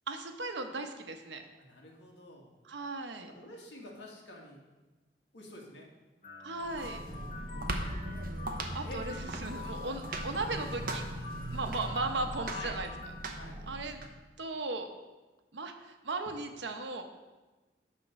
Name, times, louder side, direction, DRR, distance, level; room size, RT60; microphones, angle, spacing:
voice 1, 0.1-1.4 2.6-3.3 6.4-7.0 8.7-11.0 11.5-12.9 13.7-14.0 14.4-14.9 15.5-17.0, right 3 dB, 90° right, 5 dB, 1.0 m, -37 dB
voice 2, 1.6-2.5 3.3-4.6 5.3-5.9 7.1-7.5 8.8-9.0 9.8-10.0 12.5-12.7 13.4-13.6, left 1 dB, 80° left, 0 dB, 1.7 m, -48 dB
sound 1, 6.2-13.2, left 4 dB, 45° left, 1.5 m, -45 dB
sound 2, 6.6-14.1, right 1 dB, 50° right, 0.9 m, -39 dB
10.0 x 3.7 x 6.4 m, 1.2 s
head